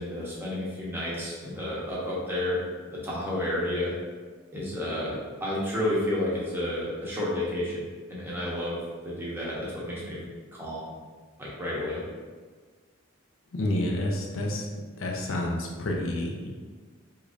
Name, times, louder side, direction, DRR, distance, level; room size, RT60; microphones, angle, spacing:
voice 1, 0.0-2.6 2.9-3.9 4.5-7.8 8.1-8.8 9.0-10.2 10.5-10.9 11.4-12.0, left 1 dB, 10° right, -7 dB, 0.8 m, -31 dB
voice 2, 13.5-14.7 15.0-16.5, left 1 dB, 75° left, -1 dB, 0.6 m, -29 dB
3.6 x 3.1 x 2.5 m, 1.5 s
head